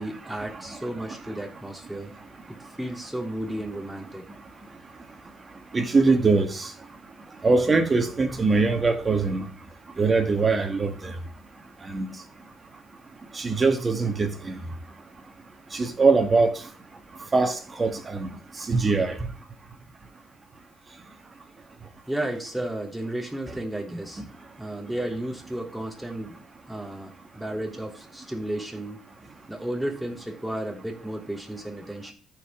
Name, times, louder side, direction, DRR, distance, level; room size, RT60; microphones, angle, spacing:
voice 1, 0.0-2.1 2.5-4.2 22.1-24.2 24.6-26.4 26.7-29.0 29.5-32.1, right 1 dB, 5° right, 3.3 m, -33 dB
voice 2, 5.7-6.7 7.4-9.4 10.0-11.1 11.9-12.1 13.3-14.6 15.7-16.5 17.3-18.3 18.7-19.2, right 3 dB, 35° right, 1.7 m, -22 dB
13.5 x 5.1 x 3.7 m
supercardioid pair, 65°, 0 cm